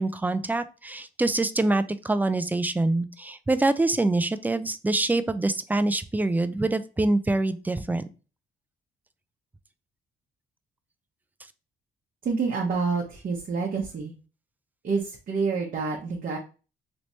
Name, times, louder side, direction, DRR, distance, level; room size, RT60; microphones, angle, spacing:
voice 1, 0.0-8.0, right 2 dB, 10° right, 12 dB, 0.3 m, -25 dB
voice 2, 12.2-14.1 14.8-16.4, right 4 dB, 45° right, -1 dB, 0.8 m, -28 dB
3.2 x 3.0 x 2.6 m, 0.34 s
cardioid pair, 90°, 20 cm